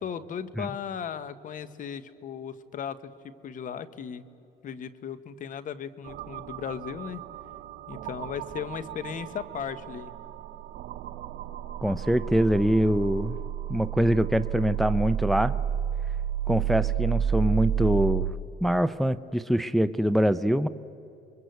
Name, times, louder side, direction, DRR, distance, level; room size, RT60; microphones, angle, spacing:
voice 1, 0.0-4.2 4.6-7.2 7.9-10.1, left 8 dB, 50° left, 14 dB, 1.3 m, -36 dB
sound 1, 6.0-18.3, right 10 dB, 75° right, 1.0 m, -31 dB
voice 2, 11.8-13.4 13.7-15.5 16.5-18.3 18.6-20.7, equal, ahead, 12 dB, 0.6 m, -24 dB
29.0 x 23.0 x 8.1 m, 2.8 s
cardioid pair, 110°, 17 cm